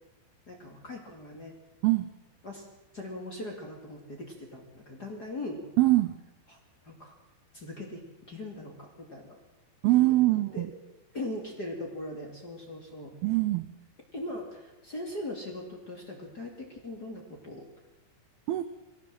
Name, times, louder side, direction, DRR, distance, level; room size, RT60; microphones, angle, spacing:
voice 1, 0.5-1.5 2.4-2.7 2.9-5.6 6.8-7.1 7.5-9.4 9.9-10.6 11.1-13.1 14.1-17.7, left 1 dB, 30° left, 0 dB, 2.2 m, -40 dB
voice 2, 5.8-6.2 9.8-10.7 13.2-13.7 18.5-18.6, right 18 dB, 80° right, 11 dB, 2.2 m, -23 dB
21.5 x 17.0 x 7.7 m, 1.1 s
omnidirectional pair, 5.4 m